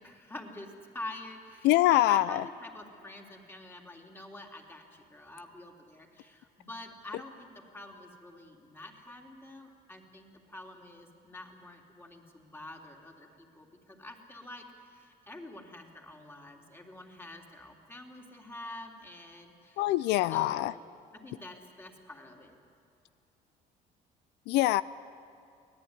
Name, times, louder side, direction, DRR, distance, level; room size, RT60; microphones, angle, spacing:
voice 1, 0.0-19.8 20.2-20.9 21.2-22.5, left 1 dB, 15° left, 1 dB, 3.3 m, -47 dB
voice 2, 1.6-2.4 19.8-20.7 24.5-24.8, left 15 dB, 90° left, 17 dB, 0.5 m, -24 dB
24.5 x 18.0 x 9.7 m, 2.8 s
cardioid pair, 110°, 17 cm